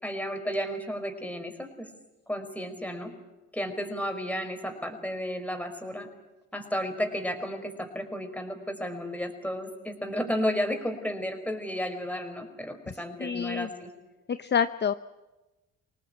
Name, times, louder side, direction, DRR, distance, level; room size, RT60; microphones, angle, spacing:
voice 1, 0.0-1.9 2.3-3.1 3.5-6.1 6.5-13.9, equal, 5° left, 7 dB, 4.8 m, -33 dB
voice 2, 12.9-13.7 14.3-14.9, left 7 dB, 35° left, 12 dB, 0.8 m, -28 dB
26.0 x 19.0 x 8.7 m, 1.1 s
cardioid pair, 90°, 30 cm